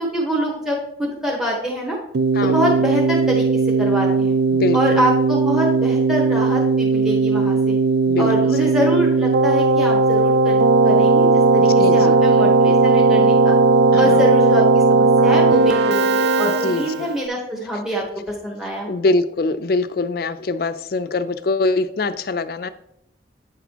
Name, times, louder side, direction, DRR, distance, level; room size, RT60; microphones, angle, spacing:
voice 1, 0.0-2.0 2.4-3.4 3.8-4.3 4.7-7.8 8.2-13.5 13.9-19.0, equal, 5° right, -2 dB, 1.0 m, -24 dB
Keyboard (musical), 2.1-17.2, right 3 dB, 65° right, 0.3 m, -16 dB
voice 2, 4.5-5.0 8.1-8.3 11.8-12.2 13.9-14.2 16.6-17.1 18.9-22.7, left 3 dB, 55° left, 12 dB, 0.4 m, -23 dB
8.8 x 6.1 x 2.9 m, 0.75 s
head